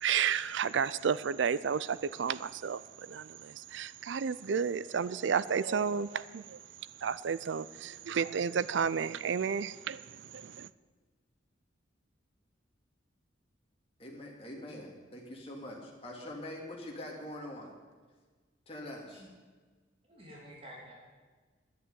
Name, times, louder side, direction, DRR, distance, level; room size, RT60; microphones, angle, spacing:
voice 1, 0.0-2.8 3.1-6.6 7.0-10.0 10.3-10.7, right 6 dB, 70° right, 17 dB, 0.4 m, -32 dB
voice 2, 14.0-17.7 18.7-19.2, left 1 dB, 30° left, -1 dB, 2.6 m, -44 dB
voice 3, 20.1-20.9, equal, 30° right, -4 dB, 3.1 m, -50 dB
10.5 x 9.2 x 9.6 m, 1.4 s
head